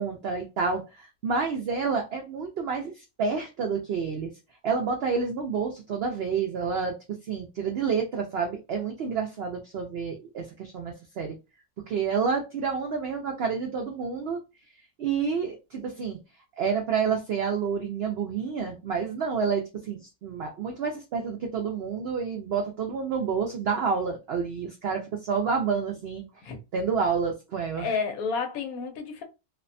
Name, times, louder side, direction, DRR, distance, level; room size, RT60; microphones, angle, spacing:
voice 1, 0.0-4.3 4.6-11.4 11.9-14.4 15.0-16.2 16.6-26.2 26.7-27.9, right 5 dB, 80° right, 0.5 m, -29 dB
voice 2, 27.8-29.2, left 5 dB, 75° left, 1.0 m, -30 dB
2.6 x 2.1 x 2.5 m
omnidirectional pair, 1.6 m